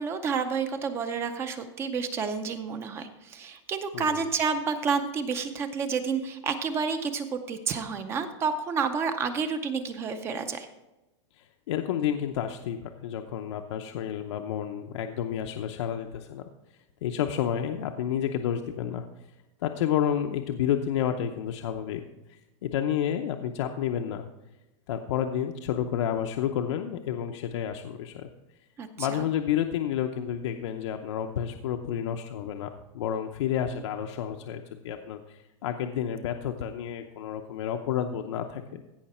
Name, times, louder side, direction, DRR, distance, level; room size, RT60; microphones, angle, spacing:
voice 1, 0.0-10.7 28.8-29.3, right 5 dB, 15° right, 9 dB, 0.5 m, -30 dB
voice 2, 11.4-16.4 17.0-19.1 19.6-22.0 22.3-24.2 24.9-28.3 29.0-38.8, left 9 dB, 65° left, 5 dB, 0.7 m, -30 dB
16.0 x 5.7 x 4.3 m, 1.0 s
supercardioid pair, 175°, 16 cm